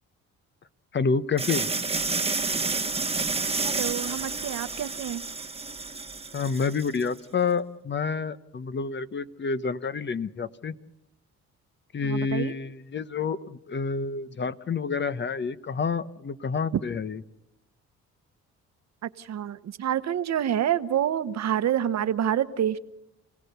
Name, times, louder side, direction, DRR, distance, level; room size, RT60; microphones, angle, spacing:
voice 1, 0.9-1.7 6.3-10.7 11.9-17.2, left 5 dB, 35° left, 14 dB, 0.9 m, -28 dB
sound 1, 1.4-7.1, right 4 dB, 20° right, 1.4 m, -30 dB
voice 2, 3.6-5.2 12.0-12.5 19.0-22.8, right 10 dB, 65° right, 13 dB, 1.1 m, -27 dB
28.5 x 17.5 x 6.8 m, 0.85 s
cardioid pair, 90°, 30 cm